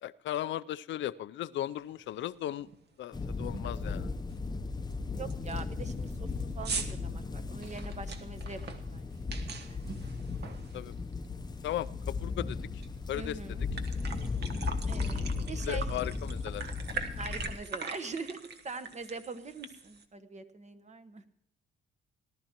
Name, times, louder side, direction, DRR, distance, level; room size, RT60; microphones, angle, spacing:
voice 1, 0.0-2.7 3.0-4.1 10.7-10.9 11.6-12.8 13.1-13.6 15.7-16.7, left 12 dB, 70° left, 15 dB, 0.5 m, -36 dB
sound 1, 1.9-2.0 2.5-2.8 3.0-3.1 3.5-3.9 4.3-4.4 4.9-5.0 5.3-11.2 11.6-12.9 13.2-13.3 13.6-20.0, right 4 dB, 55° right, 1.3 m, -42 dB
sound 2, 3.1-17.6, left 4 dB, 20° left, 0.7 m, -36 dB
voice 2, 5.2-9.1 13.1-13.6 14.9-15.9 17.2-21.3, right 4 dB, 35° right, 10 dB, 1.1 m, -43 dB
18.5 x 12.0 x 2.9 m, 0.75 s
cardioid pair, 90°, 20 cm